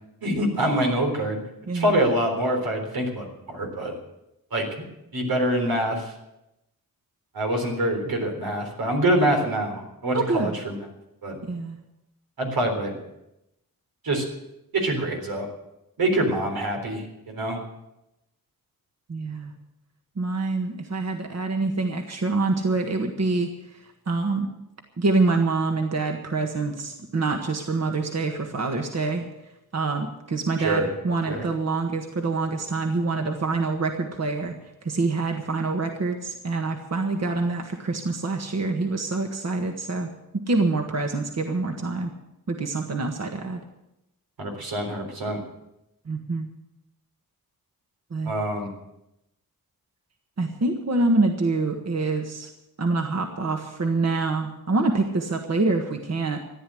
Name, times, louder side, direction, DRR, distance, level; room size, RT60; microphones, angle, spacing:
voice 1, 0.2-1.4 1.7-3.9 4.5-4.8 5.1-6.1 7.3-10.8 11.2-11.4 12.4-13.0 14.0-14.2 14.7-15.5 16.0-17.6 30.6-30.9 31.3-31.4 44.4-45.4 48.2-48.7, right 1 dB, 85° right, 2 dB, 4.0 m, -25 dB
voice 2, 1.7-2.0 10.1-10.5 11.4-11.8 19.1-19.5 20.2-23.5 24.1-24.5 25.0-29.3 29.7-34.5 34.8-40.1 40.5-42.1 42.5-43.6 46.1-46.5 48.1-48.3 50.4-52.5 52.8-56.4, right 3 dB, 45° right, 3 dB, 1.6 m, -26 dB
14.5 x 10.0 x 7.8 m, 0.88 s
wide cardioid pair, 90°, 35 cm